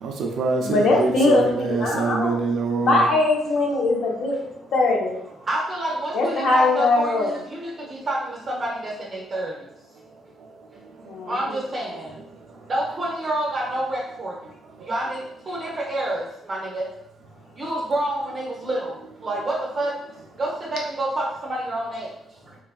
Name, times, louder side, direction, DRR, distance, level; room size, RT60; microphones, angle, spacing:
voice 1, 0.0-3.1 14.8-14.9, right 4 dB, 70° right, 1 dB, 0.4 m, -25 dB
voice 2, 0.6-2.3 2.8-4.4 4.7-5.2 6.1-7.3 11.1-11.6, left 2 dB, 70° left, -1 dB, 0.7 m, -21 dB
voice 3, 5.5-9.5 11.3-12.1 12.7-14.3 14.9-16.8 17.6-18.9 19.2-19.9 20.4-22.1, right 1 dB, 40° right, -5 dB, 0.8 m, -28 dB
3.1 x 2.2 x 2.4 m, 0.78 s
cardioid pair, 90°, 0 cm